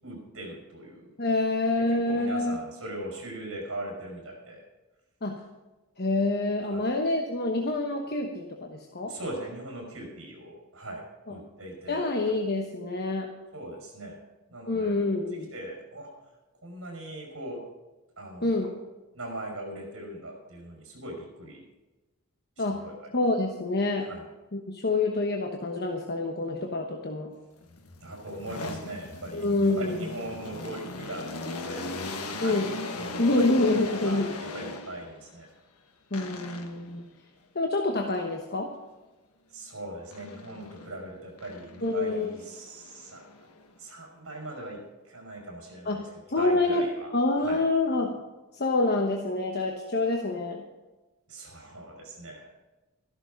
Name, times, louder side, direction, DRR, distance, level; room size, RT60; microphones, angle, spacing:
voice 1, 0.0-1.1 1.9-4.6 6.6-6.9 9.1-12.4 13.5-14.2 14.5-15.0 15.5-16.1 16.6-17.7 18.2-18.8 19.1-21.6 22.6-23.1 24.0-24.3 28.0-29.5 29.8-31.9 32.3-32.6 32.9-35.5 39.5-43.5 43.8-47.7 51.3-52.5, right 1 dB, 60° right, 0 dB, 5.2 m, -40 dB
voice 2, 1.2-2.6 5.2-5.4 6.0-9.1 11.9-13.3 14.7-15.5 18.4-18.7 22.6-22.8 23.1-24.1 24.5-27.3 29.3-30.0 32.4-32.7 33.2-34.3 36.1-37.0 37.5-38.7 41.8-42.3 45.9-46.8 47.1-48.2 48.5-50.6, left 2 dB, 45° left, 2 dB, 1.1 m, -27 dB
sound 1, 27.6-35.2 36.1-36.9 40.1-40.9 41.4-43.8, left 3 dB, 85° left, 1.4 m, -39 dB
14.0 x 11.5 x 5.2 m, 1.1 s
head